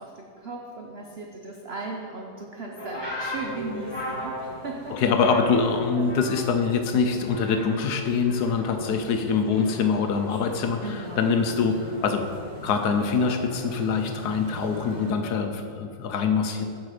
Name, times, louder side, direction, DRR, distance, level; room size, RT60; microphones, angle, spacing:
voice 1, 0.0-5.0 5.9-6.1 7.7-7.9 9.4-9.8 10.8-11.3 11.7-11.8 14.8-15.2, right 3 dB, 80° right, 0 dB, 0.5 m, -37 dB
sound 1, 2.8-6.7 7.0-7.9 8.2-10.9 11.7-12.1, left 1 dB, 15° left, 1.1 m, -38 dB
sound 2, 3.3-15.1, right 1 dB, 50° right, 1.6 m, -44 dB
voice 2, 4.9-12.2 12.6-16.7, left 5 dB, 70° left, 6 dB, 1.0 m, -24 dB
8.5 x 6.0 x 4.9 m, 2.5 s
omnidirectional pair, 2.0 m